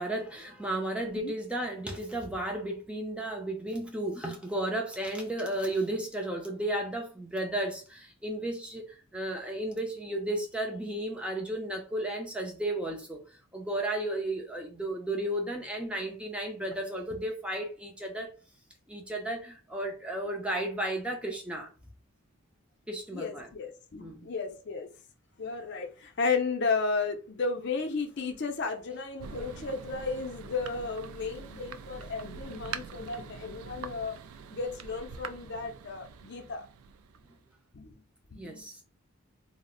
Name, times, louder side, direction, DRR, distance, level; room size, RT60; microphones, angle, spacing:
voice 1, 0.0-13.2 13.5-18.3 18.9-21.7 22.9-23.5 24.0-24.3 38.4-38.8, right 1 dB, 5° right, 0.5 m, -33 dB
voice 2, 1.0-1.3 23.1-24.9 25.4-34.2 34.5-36.7 37.7-38.0 38.3-38.7, left 4 dB, 50° left, 0.5 m, -33 dB
Thunder, 29.2-37.5, right 6 dB, 85° right, 0.3 m, -44 dB
2.5 x 2.0 x 3.7 m
head